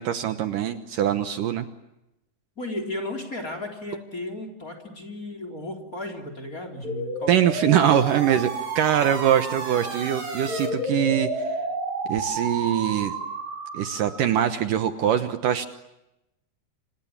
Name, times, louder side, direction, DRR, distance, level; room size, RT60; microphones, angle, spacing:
voice 1, 0.0-1.7 7.3-8.5 8.8-11.6 12.1-13.1 13.7-15.7, right 10 dB, 70° right, 9 dB, 2.5 m, -23 dB
voice 2, 2.6-7.3 7.6-8.1 8.9-9.5 9.8-10.1, left 1 dB, 20° left, 6 dB, 3.8 m, -35 dB
sound 1, 6.8-14.3, right 2 dB, 45° right, 5.8 m, -31 dB
30.0 x 26.5 x 7.4 m, 0.92 s
omnidirectional pair, 4.3 m